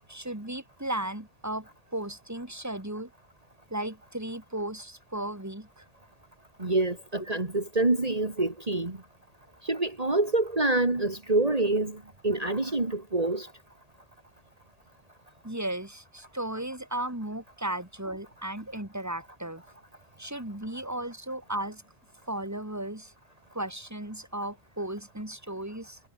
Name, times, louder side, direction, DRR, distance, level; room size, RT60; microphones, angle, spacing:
voice 1, 0.1-3.1 3.7-5.8 7.2-7.3 15.4-19.6 20.2-21.8 22.3-23.1 23.5-26.0, right 1 dB, 15° right, 3.6 m, -35 dB
voice 2, 6.6-9.0 9.6-12.0 12.2-13.5, right 2 dB, 35° right, 2.6 m, -26 dB
omnidirectional pair, 1.1 m